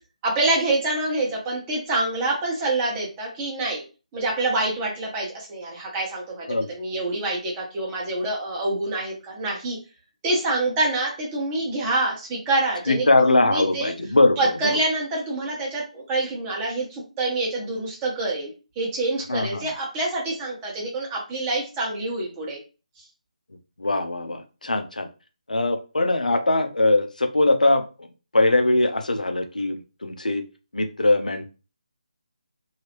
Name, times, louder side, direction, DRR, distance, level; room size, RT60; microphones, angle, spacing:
voice 1, 0.2-3.8 4.1-9.8 10.2-13.9 14.4-18.5 18.7-22.6 23.0-23.1, right 2 dB, 15° right, -3 dB, 1.2 m, -26 dB
voice 2, 12.9-14.8 19.3-19.7 23.8-25.1 25.5-28.1 28.3-30.4 30.7-31.5, left 2 dB, 90° left, 7 dB, 0.6 m, -21 dB
3.1 x 2.8 x 2.9 m, 0.33 s
figure-of-eight pair, 160°, 4 cm